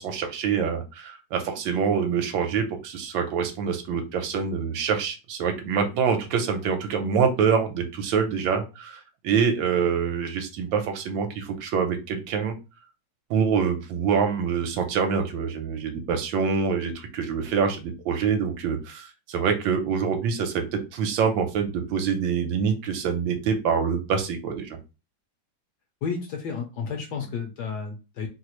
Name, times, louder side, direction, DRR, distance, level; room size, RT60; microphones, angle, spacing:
voice 1, 0.0-12.5 13.3-24.8, right 6 dB, 75° right, 5 dB, 1.3 m, -25 dB
voice 2, 26.0-28.3, left 5 dB, 70° left, 2 dB, 1.0 m, -32 dB
3.2 x 2.4 x 2.9 m, 0.29 s
omnidirectional pair, 2.2 m